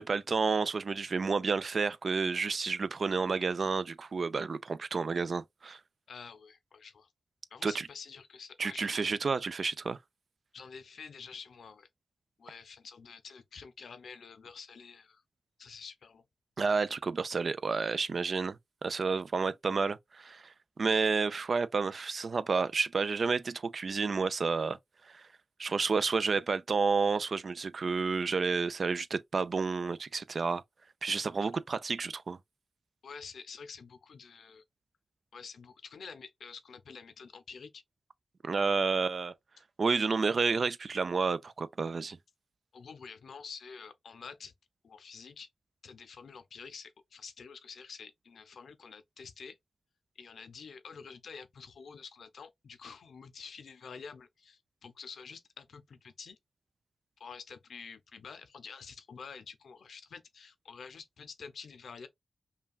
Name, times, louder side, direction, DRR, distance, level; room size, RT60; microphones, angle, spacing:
voice 1, 0.0-5.8 7.6-7.9 8.6-10.0 16.6-20.5 20.8-24.8 25.1-25.2 25.6-30.6 31.0-32.4 38.4-39.3 39.8-42.2, right 4 dB, 60° right, 0.4 m, -30 dB
voice 2, 6.1-7.1 7.5-9.2 10.5-11.9 12.4-15.2 15.6-16.2 33.0-34.6 35.3-37.8 42.7-44.5 44.8-45.5 45.8-49.6 50.2-56.4 57.2-62.1, left 5 dB, 90° left, 0.6 m, -48 dB
5.5 x 2.2 x 2.3 m
wide cardioid pair, 85°, 0 cm